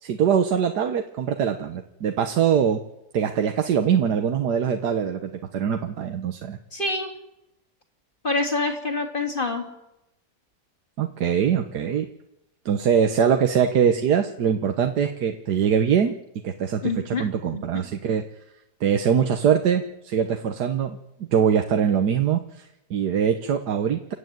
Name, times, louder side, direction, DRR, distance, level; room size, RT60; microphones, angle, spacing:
voice 1, 0.0-2.8 3.1-6.6 11.0-12.1 12.6-16.2 16.4-18.2 18.8-21.0 21.3-24.1, right 7 dB, 75° right, 6 dB, 1.6 m, -23 dB
voice 2, 6.7-7.1 8.2-9.7 16.8-17.3 17.5-17.8, left 3 dB, 30° left, 3 dB, 3.4 m, -26 dB
29.0 x 13.0 x 9.4 m, 0.91 s
omnidirectional pair, 1.8 m